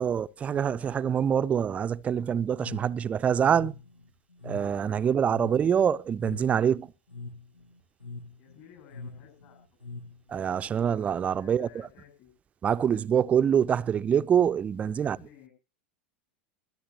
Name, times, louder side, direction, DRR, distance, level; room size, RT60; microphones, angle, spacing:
voice 1, 0.0-3.7 4.4-6.9 10.3-11.7 12.6-15.2, right 8 dB, 25° right, 0.6 m, -25 dB
sound 1, 2.5-10.4, left 3 dB, 85° left, 1.6 m, -44 dB
voice 2, 4.8-5.4 8.4-9.8 11.3-12.3 14.9-15.5, left 10 dB, 50° left, 7.9 m, -55 dB
24.0 x 10.0 x 3.0 m
figure-of-eight pair, 80°, 5 cm